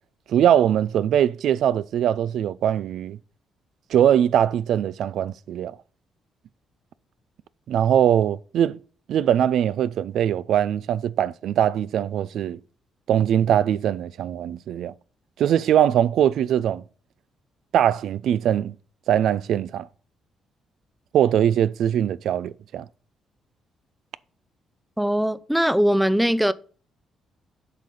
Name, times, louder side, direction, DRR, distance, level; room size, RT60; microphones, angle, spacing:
voice 1, 0.3-3.2 3.9-5.8 7.7-8.8 9.1-12.6 13.1-14.9 15.4-16.8 17.7-18.7 19.1-19.9 21.1-22.8, right 10 dB, 75° right, 0.4 m, -21 dB
voice 2, 25.0-26.5, equal, 5° right, 0.5 m, -21 dB
7.8 x 5.0 x 5.4 m
cardioid pair, 90°, 0 cm